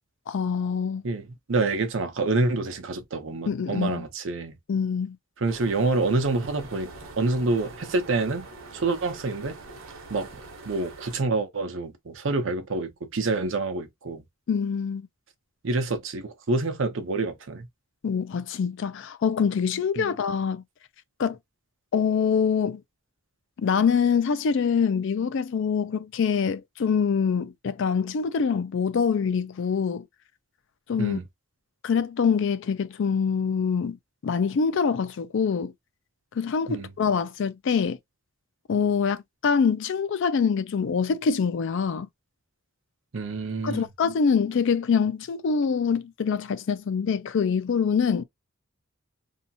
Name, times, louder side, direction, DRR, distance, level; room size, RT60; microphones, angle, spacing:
voice 1, 0.3-1.0 3.5-4.1 4.7-5.2 14.5-15.1 18.0-20.6 21.2-21.4 21.9-22.8 23.6-30.1 30.9-31.2 31.8-34.0 34.2-35.7 36.4-38.0 38.7-42.1 43.6-48.2, left 6 dB, 65° left, 0.4 m, -25 dB
voice 2, 1.0-4.6 5.4-6.9 7.2-8.5 8.7-9.6 10.1-10.3 10.7-14.2 15.6-17.7 20.0-20.2 31.0-31.2 36.7-36.9 43.1-43.9, right 3 dB, 65° right, 0.7 m, -27 dB
sound 1, 5.5-11.2, right 3 dB, 90° right, 0.9 m, -44 dB
2.8 x 2.4 x 2.7 m
head